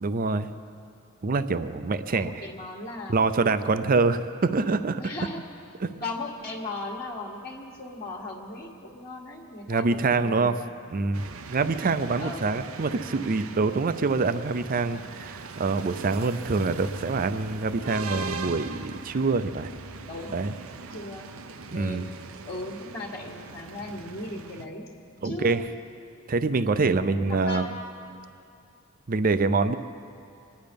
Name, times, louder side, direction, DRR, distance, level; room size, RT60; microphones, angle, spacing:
voice 1, 0.0-0.5 1.2-2.5 3.1-5.0 5.8-5.9 9.7-10.6 10.9-19.7 20.3-20.5 21.7-22.1 25.2-25.6 26.3-27.7 29.1-29.8, right 3 dB, 45° right, 12 dB, 0.5 m, -25 dB
voice 2, 2.1-3.2 5.0-5.4 6.0-10.5 11.1-11.2 12.2-12.4 20.1-20.4 20.9-21.3 21.7-22.1 22.5-24.8 25.2-25.8 27.1-27.7, left 2 dB, 45° left, -2 dB, 1.5 m, -37 dB
sound 1, 11.1-24.7, right 3 dB, 85° right, 0.7 m, -40 dB
25.5 x 10.5 x 5.2 m, 2.6 s
head